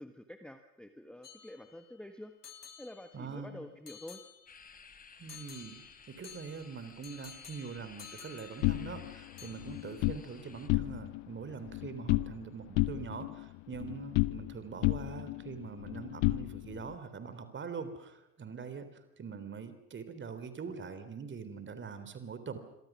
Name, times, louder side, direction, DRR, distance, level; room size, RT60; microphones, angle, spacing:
voice 1, 0.0-2.3 2.8-4.2, left 1 dB, ahead, 8 dB, 1.4 m, -48 dB
sound 1, 1.2-2.0 2.4-3.4 3.9-4.8 5.3-9.1 9.4-10.0, left 7 dB, 85° left, 2.3 m, -53 dB
voice 2, 3.1-3.7 5.2-22.6, right 5 dB, 25° right, 11 dB, 3.6 m, -43 dB
sound 2, 4.5-10.7, left 5 dB, 20° left, 1.9 m, -56 dB
sound 3, 8.6-10.2 10.6-11.3 11.5-12.4 12.8-14.6 14.8-16.9, left 23 dB, 45° left, 0.8 m, -32 dB
27.0 x 24.0 x 6.2 m, 0.90 s
figure-of-eight pair, 75°, 45 cm